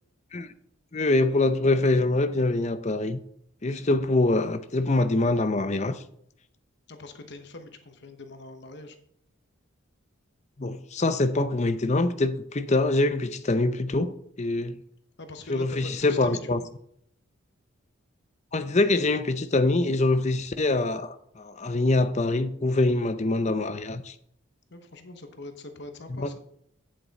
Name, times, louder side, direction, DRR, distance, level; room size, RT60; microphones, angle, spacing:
voice 1, 0.9-3.2 3.6-6.0 10.6-14.1 14.4-14.8 15.5-16.6 18.5-24.1 26.1-26.3, left 2 dB, 35° left, 0.6 m, -24 dB
voice 2, 6.9-9.0 15.2-16.7 24.7-26.4, left 2 dB, 55° left, 1.0 m, -43 dB
8.7 x 7.5 x 4.0 m
head